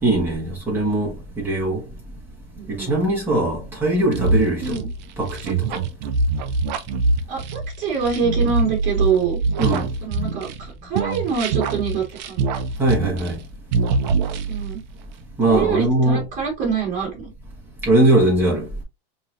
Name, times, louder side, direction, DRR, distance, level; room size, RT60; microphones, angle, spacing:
voice 1, 0.0-1.8 2.7-4.8 5.2-5.8 9.6-9.9 12.8-13.4 15.4-16.3 17.8-18.7, right 2 dB, 5° right, 1.5 m, -20 dB
voice 2, 2.6-2.9 4.6-4.9 7.3-9.4 10.0-10.5 10.8-12.4 14.5-14.8 15.5-17.3, right 6 dB, 25° right, 2.5 m, -25 dB
sound 1, 4.1-10.7 10.9-13.4 13.7-14.8, right 3 dB, 50° right, 0.6 m, -23 dB
5.3 x 3.0 x 2.5 m
supercardioid pair, 165°, 29 cm